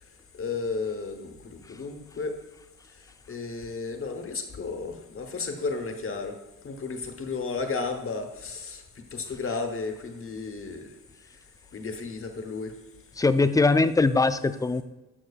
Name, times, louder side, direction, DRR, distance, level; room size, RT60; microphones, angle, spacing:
voice 1, 0.3-2.3 3.3-6.3 6.6-8.8 9.1-10.9 11.7-12.7, left 4 dB, 45° left, 5 dB, 1.1 m, -33 dB
voice 2, 13.2-14.8, left 3 dB, 10° left, 12 dB, 0.3 m, -21 dB
11.0 x 6.0 x 2.4 m, 1.1 s
cardioid pair, 85°, 31 cm